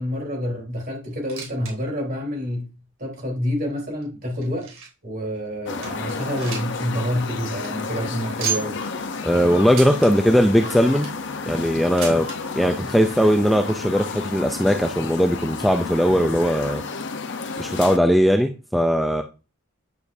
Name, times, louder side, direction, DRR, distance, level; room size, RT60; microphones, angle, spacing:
voice 1, 0.0-2.7 3.0-4.7 5.0-8.8, equal, 45° right, 3.7 m, -28 dB
sound 1, 1.1-1.7 2.0-2.1 2.8-2.9 3.6-5.1 5.5-5.6 5.8-6.9 7.2-7.3 7.5-7.7 8.4-8.9 9.7-10.1 10.7-11.2 12.0-12.4 13.3-13.4 13.6-13.7 14.5-14.6, right 7 dB, 75° right, 3.6 m, -32 dB
sound 2, 5.7-18.0, left 4 dB, 60° left, 0.8 m, -31 dB
voice 2, 9.2-11.1 11.4-12.3 12.6-16.8 17.6-19.2, equal, ahead, 0.4 m, -19 dB
9.8 x 7.1 x 2.7 m
head